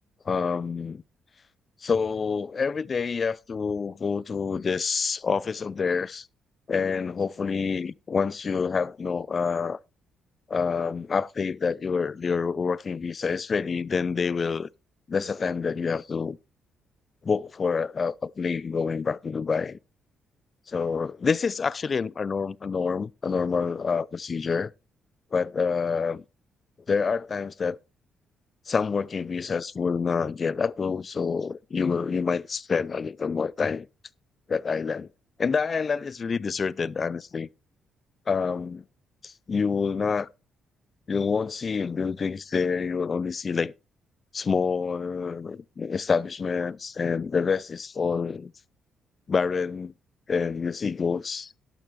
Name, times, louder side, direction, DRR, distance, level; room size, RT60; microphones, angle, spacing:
voice 1, 0.3-1.0 1.8-6.3 6.7-9.8 10.5-14.7 15.1-16.4 17.2-19.8 20.7-24.7 25.3-26.2 26.9-27.8 28.7-33.9 34.5-35.1 35.4-37.5 38.3-38.8 39.2-40.3 41.1-43.7 44.3-48.5 49.3-49.9 50.3-51.5, left 5 dB, 40° left, 0.5 m, -27 dB
11.5 x 11.0 x 3.3 m
cardioid pair, 90°, 0 cm